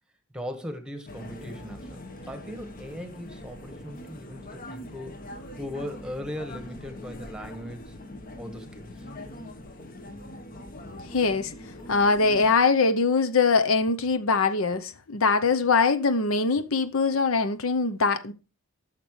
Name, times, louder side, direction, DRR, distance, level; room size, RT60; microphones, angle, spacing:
voice 1, 0.3-5.1 5.6-7.9 8.4-9.0, equal, 5° right, 1.5 m, -39 dB
sound 1, 1.1-12.6, left 1 dB, 40° left, 1.2 m, -42 dB
voice 2, 11.1-11.5 11.9-18.3, left 4 dB, 70° left, 0.8 m, -22 dB
13.0 x 6.7 x 3.2 m
head